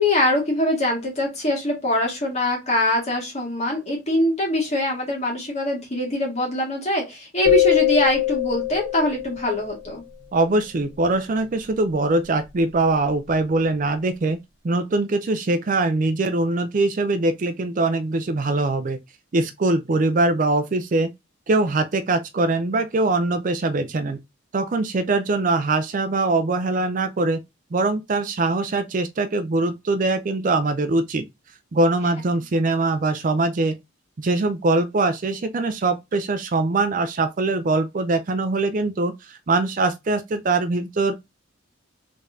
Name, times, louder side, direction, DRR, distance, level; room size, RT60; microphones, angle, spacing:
voice 1, 0.0-10.0, left 1 dB, 30° left, 2.0 m, -23 dB
sound 1, 7.4-9.7, left 15 dB, 75° left, 1.8 m, -21 dB
voice 2, 10.3-14.4 14.6-19.0 19.3-21.1 21.5-24.2 24.5-27.4 27.7-31.3 31.7-33.7 34.2-41.1, right 2 dB, 40° right, 0.4 m, -22 dB
3.8 x 3.6 x 2.6 m
head